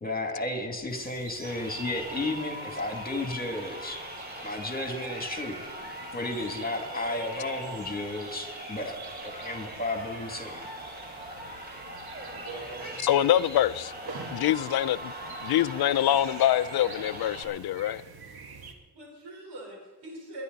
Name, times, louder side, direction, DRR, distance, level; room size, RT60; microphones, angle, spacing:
voice 1, 0.0-4.0 4.4-5.6 6.1-8.9 9.2-10.7, left 2 dB, 25° left, 2.5 m, -33 dB
sound 1, 0.9-18.7, right 4 dB, 65° right, 1.7 m, -48 dB
Crowd, 1.4-17.4, right 1 dB, 25° right, 3.1 m, -40 dB
voice 2, 12.2-13.2 18.9-20.4, right 2 dB, 90° right, 4.5 m, -43 dB
voice 3, 13.0-13.9 14.3-15.1 15.4-18.0, left 12 dB, 70° left, 0.5 m, -25 dB
21.5 x 10.5 x 4.1 m
cardioid pair, 65°, 39 cm